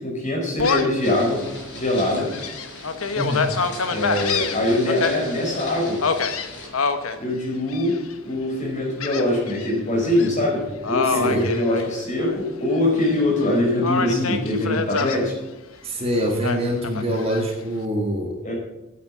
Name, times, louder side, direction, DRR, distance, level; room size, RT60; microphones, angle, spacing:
voice 1, 0.0-1.4 1.7-2.3 3.9-6.0 7.2-8.0 8.2-15.3 18.4-18.5, left 1 dB, 35° left, -2 dB, 4.9 m, -23 dB
Gull seagull, 0.6-1.0 1.5-1.6 2.2-5.1 6.0-7.2 7.7-8.1 9.0-9.7 10.0-10.3 10.8-12.4 12.7-13.5 13.8-15.2 16.4-17.4, left 4 dB, 80° left, 1.0 m, -26 dB
sound 1, 1.0-6.7, left 1 dB, 55° left, 4.9 m, -38 dB
voice 2, 3.1-3.5 11.0-11.5 15.8-18.4, equal, 30° right, 1 dB, 1.8 m, -25 dB
9.4 x 8.8 x 7.4 m, 0.95 s
head